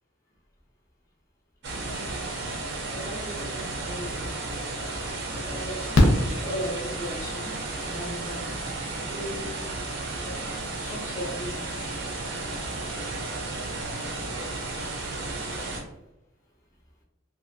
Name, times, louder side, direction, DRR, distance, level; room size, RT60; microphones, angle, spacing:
voice 1, 1.6-2.4 2.8-4.2 5.4-6.0 6.4-9.7 10.1-10.5 10.8-11.8 12.8-12.9, equal, 15° left, -2 dB, 0.4 m, -38 dB
sound 1, 1.6-15.8, right 2 dB, 60° right, 0.5 m, -33 dB
Fireworks, 4.3-4.4 5.9-7.3 9.0-9.1 9.3-9.4, left 1 dB, 70° left, 0.5 m, -22 dB
2.4 x 2.4 x 2.5 m, 0.95 s
head